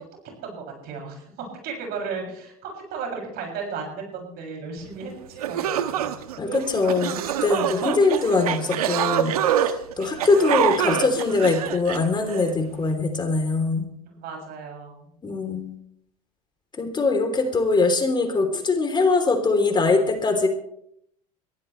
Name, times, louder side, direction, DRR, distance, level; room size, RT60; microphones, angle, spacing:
voice 1, 0.4-1.2 1.6-6.1 7.6-7.8 10.2-10.6 14.1-15.1 17.1-17.2, right 5 dB, 55° right, 1 dB, 7.0 m, -35 dB
sound 1, 5.0-5.1 5.4-12.5, right 10 dB, 80° right, 1.2 m, -26 dB
voice 2, 6.4-9.3 9.6-13.9 15.2-15.7 16.8-20.5, left 3 dB, 25° left, 5 dB, 3.4 m, -22 dB
22.0 x 15.5 x 3.3 m, 0.73 s
hypercardioid pair, 80°, 19 cm